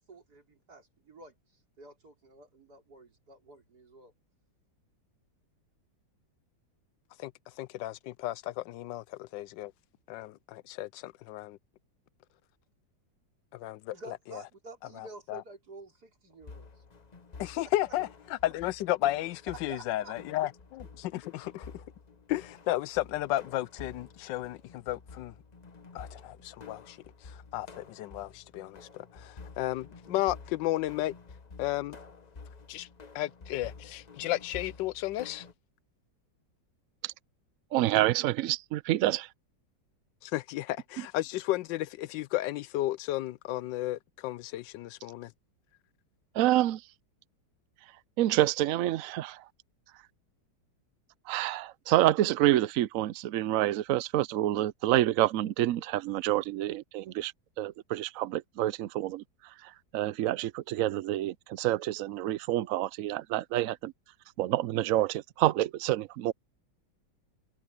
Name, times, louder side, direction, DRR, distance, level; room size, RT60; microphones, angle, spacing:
voice 1, 0.0-4.1 13.9-16.8 17.5-17.9 19.5-20.5, right 3 dB, 60° right, 4.7 m, -50 dB
voice 2, 7.6-9.7 10.1-11.6 13.5-13.9 14.3-14.4 15.0-15.4 17.4-21.8 22.3-25.3 25.9-31.1 31.6-32.0 32.7-32.9 33.1-35.5 40.2-45.3, left 15 dB, 85° left, 1.3 m, -33 dB
sound 1, 16.4-35.5, left 4 dB, 30° left, 0.9 m, -50 dB
voice 3, 37.7-39.3 46.3-46.8 48.2-49.5 51.3-63.9 64.4-66.3, right 14 dB, 75° right, 0.7 m, -28 dB
omnidirectional pair, 1.9 m